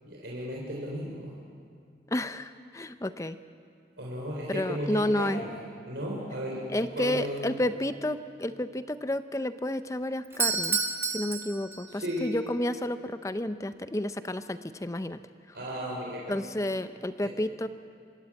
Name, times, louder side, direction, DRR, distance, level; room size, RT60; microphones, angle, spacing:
voice 1, 0.0-1.3 4.0-5.6 5.8-7.7 11.9-12.3 15.5-16.4 17.2-17.3, equal, 75° right, -4 dB, 3.7 m, -35 dB
voice 2, 2.1-3.4 4.5-5.4 6.7-10.8 11.1-15.2 16.3-17.7, left 1 dB, 15° left, 12 dB, 0.5 m, -31 dB
Doorbell, 10.2-12.2, right 4 dB, 15° right, 1.0 m, -30 dB
26.0 x 13.5 x 8.5 m, 2.4 s
head